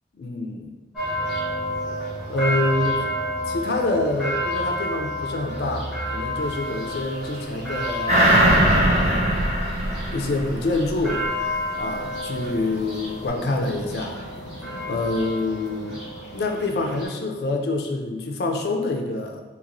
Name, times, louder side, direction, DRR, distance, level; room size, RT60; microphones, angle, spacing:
voice 1, 0.1-0.7 2.3-3.1 3.4-8.3 8.7-9.4 10.1-11.2 11.7-14.2 14.9-16.0 16.3-19.4, left 2 dB, 65° left, 3 dB, 0.4 m, -26 dB
sound 1, 0.9-17.0, equal, 5° right, 1.1 m, -30 dB
sound 2, 8.1-11.0 11.4-11.5, right 1 dB, 40° right, 0.6 m, -20 dB
3.0 x 2.9 x 2.5 m, 1.2 s
head